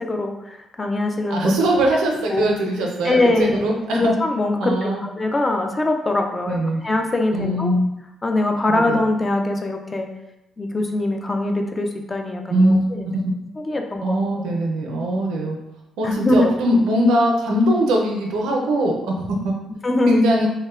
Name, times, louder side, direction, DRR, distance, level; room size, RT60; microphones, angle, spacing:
voice 1, 0.0-1.5 2.3-2.5 3.0-7.7 8.2-10.1 10.6-13.0 13.6-14.2 16.0-16.5 19.8-20.2, left 2 dB, 25° left, 3 dB, 0.3 m, -22 dB
voice 2, 1.3-4.1 4.6-5.0 6.5-6.8 7.3-7.9 8.7-9.0 12.5-12.9 14.0-15.6 16.0-19.5 20.1-20.5, equal, 90° right, 0 dB, 0.4 m, -21 dB
2.8 x 2.1 x 2.3 m, 0.92 s
cardioid pair, 90°, 0 cm